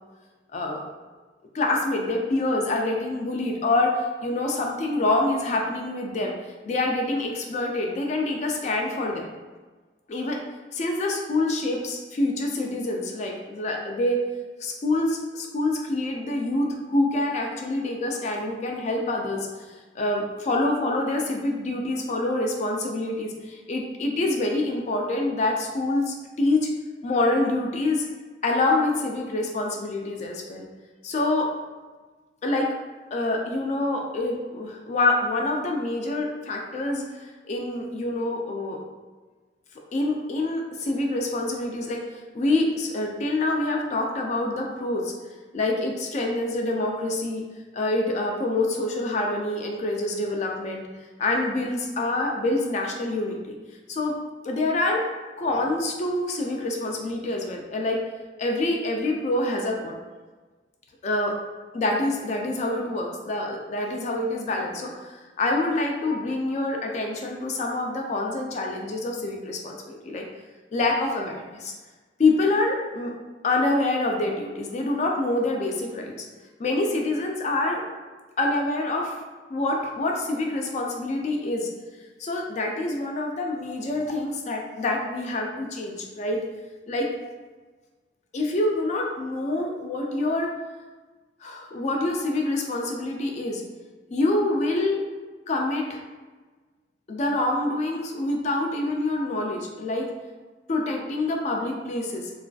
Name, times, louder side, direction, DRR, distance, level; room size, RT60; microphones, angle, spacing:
voice 1, 0.5-0.8 1.5-3.9 4.2-6.3 6.6-9.3 10.1-10.4 10.7-14.2 14.6-26.7 27.0-28.1 28.4-30.7 31.0-31.5 32.4-32.7 33.1-38.8 39.9-42.0 42.3-45.1 45.5-47.4 47.7-50.8 51.2-53.6 53.9-54.2 54.4-55.0 55.4-58.0 58.4-60.0 61.0-61.4 61.7-70.3 70.7-71.7 72.2-73.1 73.4-76.3 76.6-77.8 78.4-79.2 79.5-81.7 82.2-86.4 86.9-87.1 88.3-90.5 91.4-93.6 94.1-95.0 95.5-96.0 97.1-100.1 100.7-102.3, left 2 dB, 40° left, 1 dB, 0.3 m, -26 dB
2.4 x 2.3 x 2.2 m, 1.3 s
head